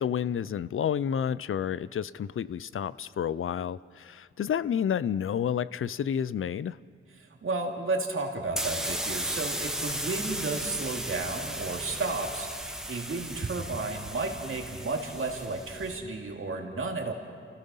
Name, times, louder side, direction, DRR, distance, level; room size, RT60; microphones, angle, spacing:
voice 1, 0.0-6.8, left 8 dB, 75° left, 18 dB, 0.5 m, -30 dB
voice 2, 7.2-17.1, right 3 dB, 75° right, 1 dB, 2.4 m, -33 dB
sound 1, 8.5-15.9, right 1 dB, 5° right, 1.4 m, -35 dB
29.0 x 16.0 x 5.5 m, 2.3 s
wide cardioid pair, 100°, 21 cm